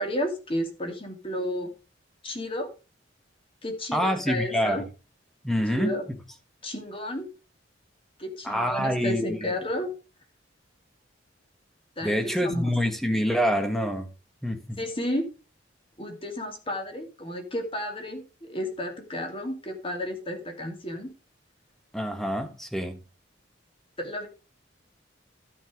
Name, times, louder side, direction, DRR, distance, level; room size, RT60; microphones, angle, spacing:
voice 1, 0.0-1.7 2.2-2.7 3.6-4.8 5.7-6.0 6.6-7.3 8.2-9.9 12.0-12.7 14.8-15.3 16.0-21.1 24.0-24.3, equal, 30° left, 2.7 m, -32 dB
voice 2, 3.9-4.8 5.4-6.2 8.4-9.5 12.0-14.1 14.4-14.8 21.9-23.0, equal, ahead, 1.5 m, -26 dB
12.5 x 5.8 x 5.1 m
head